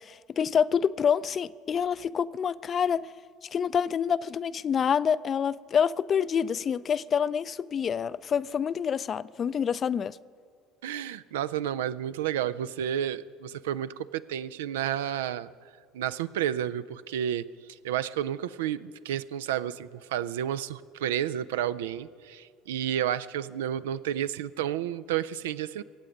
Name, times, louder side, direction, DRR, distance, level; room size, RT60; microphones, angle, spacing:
voice 1, 0.0-3.0 3.5-10.2, left 7 dB, 40° left, 0.4 m, -27 dB
voice 2, 10.8-15.5 15.9-25.8, right 10 dB, 75° right, 0.4 m, -31 dB
23.5 x 8.7 x 5.1 m
hypercardioid pair, 65°, 0 cm